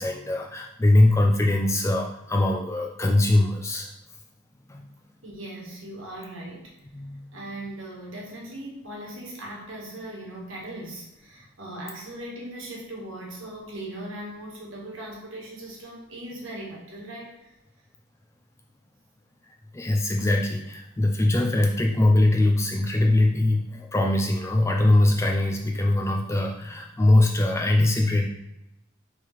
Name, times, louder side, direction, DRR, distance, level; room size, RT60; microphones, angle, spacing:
voice 1, 0.0-3.9 4.7-4.8 6.9-7.2 19.7-28.3, left 1 dB, 15° left, 1 dB, 0.4 m, -22 dB
voice 2, 5.2-6.7 7.3-17.5, right 1 dB, 65° right, -2 dB, 1.3 m, -39 dB
4.7 x 3.6 x 3.1 m, 0.89 s
head